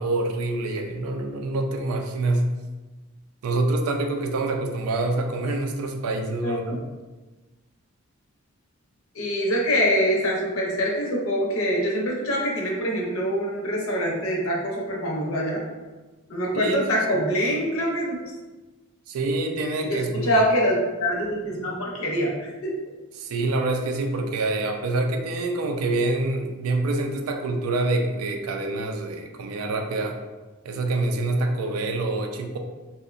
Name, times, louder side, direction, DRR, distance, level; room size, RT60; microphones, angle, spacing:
voice 1, 0.0-2.5 3.4-6.8 16.5-16.8 17.1-17.2 19.1-20.3 23.2-30.2 30.6-32.6, right 2 dB, 85° right, 4 dB, 0.4 m, -26 dB
voice 2, 9.1-15.6 16.3-18.1 19.8-22.7, equal, 70° left, -2 dB, 0.6 m, -24 dB
2.7 x 2.1 x 2.4 m, 1.2 s
head